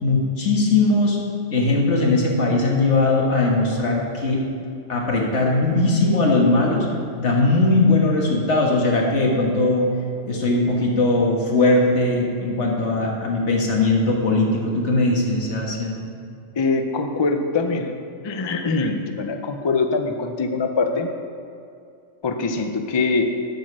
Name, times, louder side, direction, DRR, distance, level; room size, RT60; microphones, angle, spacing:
voice 1, 0.0-1.2 1.5-4.4 4.9-6.9 7.2-9.9 10.3-16.0, left 2 dB, 70° left, -1 dB, 1.7 m, -19 dB
voice 2, 16.6-18.0 18.2-21.1 22.2-23.3, left 4 dB, 35° left, 6 dB, 0.4 m, -23 dB
8.2 x 6.4 x 6.2 m, 2.5 s
omnidirectional pair, 1.2 m